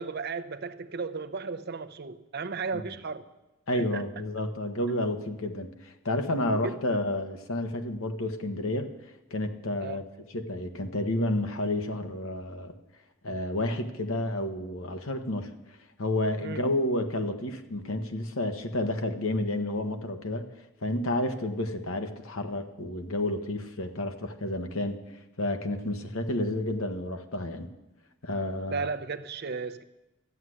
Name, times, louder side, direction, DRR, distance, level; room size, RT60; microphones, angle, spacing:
voice 1, 0.0-3.2 3.7-4.0 6.6-6.8 9.8-10.0 16.4-16.6 28.7-29.8, right 4 dB, 50° right, 11 dB, 0.7 m, -35 dB
voice 2, 3.7-8.9 9.3-10.0 10.3-12.7 13.2-15.5 16.0-20.5 20.8-25.0 25.4-27.7 28.2-28.9, left 1 dB, 85° left, 6 dB, 1.3 m, -30 dB
13.5 x 7.9 x 9.8 m, 1.0 s
head